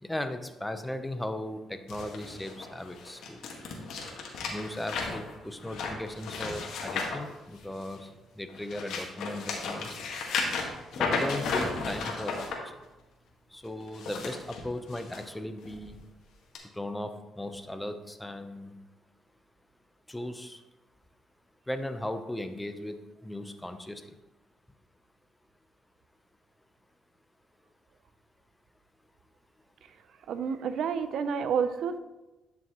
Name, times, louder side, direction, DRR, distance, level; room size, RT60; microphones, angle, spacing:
voice 1, 0.0-3.4 4.5-8.1 8.4-10.0 10.9-12.4 13.5-16.0 16.7-18.7 20.1-20.6 21.7-23.0 23.2-24.0, left 1 dB, 10° left, 8 dB, 0.7 m, -37 dB
sound 1, 1.9-8.0 8.5-12.5 13.8-15.2 15.6-15.9 16.5-16.6, left 4 dB, 80° left, 1.6 m, -34 dB
voice 2, 30.3-32.0, right 6 dB, 70° right, 11 dB, 0.5 m, -29 dB
10.5 x 6.1 x 3.0 m, 1.0 s
cardioid pair, 90°, 0 cm